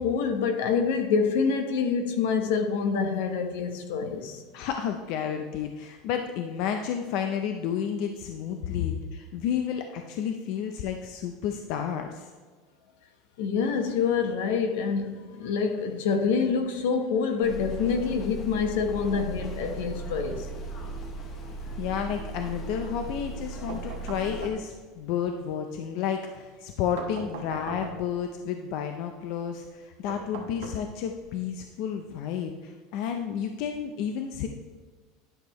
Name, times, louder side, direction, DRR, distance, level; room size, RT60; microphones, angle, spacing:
voice 1, 0.0-4.4 8.7-8.9 13.4-20.5, left 5 dB, 75° left, 1.0 m, -26 dB
voice 2, 4.5-12.3 21.8-34.5, left 8 dB, 50° left, 0.5 m, -31 dB
sound 1, 17.4-24.5, right 3 dB, 25° left, 0.8 m, -37 dB
sound 2, 23.7-25.0 27.0-28.3 30.1-31.3, right 5 dB, 80° right, 1.3 m, -40 dB
11.0 x 6.7 x 3.1 m
cardioid pair, 175°, 0 cm